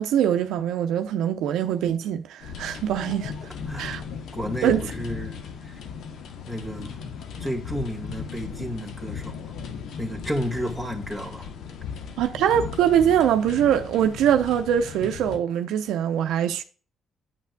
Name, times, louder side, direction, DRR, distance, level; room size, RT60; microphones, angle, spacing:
voice 1, 0.0-3.3 3.8-4.0 4.6-4.9 12.2-16.6, right 9 dB, 85° right, 0.6 m, -23 dB
sound 1, 2.4-15.4, left 6 dB, 80° left, 0.9 m, -37 dB
voice 2, 3.7-4.0 4.3-5.4 5.6-5.8 6.5-7.0 7.4-9.5 10.0-11.5, equal, 15° left, 1.9 m, -32 dB
9.6 x 5.8 x 2.2 m
cardioid pair, 90°, 0 cm